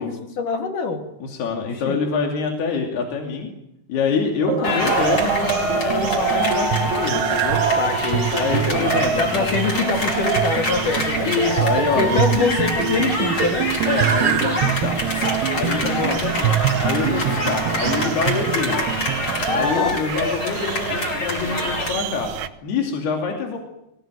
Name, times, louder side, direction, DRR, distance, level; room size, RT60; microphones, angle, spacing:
voice 1, 0.0-1.1 1.9-2.0 4.4-4.8 7.8-8.9 9.2-11.4 12.0-13.7 16.0-16.3 19.5-20.0, left 4 dB, 55° left, 4 dB, 4.0 m, -24 dB
voice 2, 1.2-3.5 3.9-7.6 8.4-9.5 11.2-12.2 13.9-15.0 15.5-18.9 19.5-22.3 22.6-23.6, left 5 dB, 80° left, 2 dB, 4.8 m, -25 dB
sound 1, 4.4-19.6, right 12 dB, 90° right, 3.1 m, -26 dB
sound 2, 4.6-21.9, left 2 dB, 30° left, 5.6 m, -26 dB
sound 3, 4.8-22.5, right 10 dB, 65° right, 1.9 m, -29 dB
23.5 x 18.5 x 9.2 m, 0.83 s
omnidirectional pair, 4.6 m